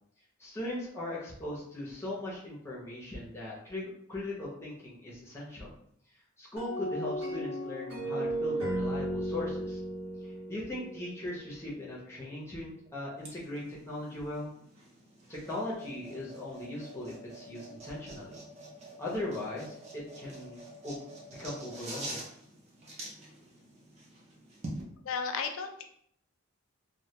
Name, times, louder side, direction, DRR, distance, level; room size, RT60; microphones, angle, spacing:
voice 1, 0.4-5.7 6.4-9.8 10.2-14.5 15.3-18.4 19.0-21.0 21.3-22.3, left 1 dB, 15° left, -6 dB, 0.5 m, -39 dB
sound 1, 6.6-11.7, right 1 dB, 75° right, 0.9 m, -35 dB
sound 2, 13.2-24.8, right 1 dB, 30° right, 0.5 m, -46 dB
voice 2, 25.0-25.8, left 5 dB, 75° left, 5 dB, 0.4 m, -34 dB
2.1 x 2.1 x 2.8 m, 0.67 s
head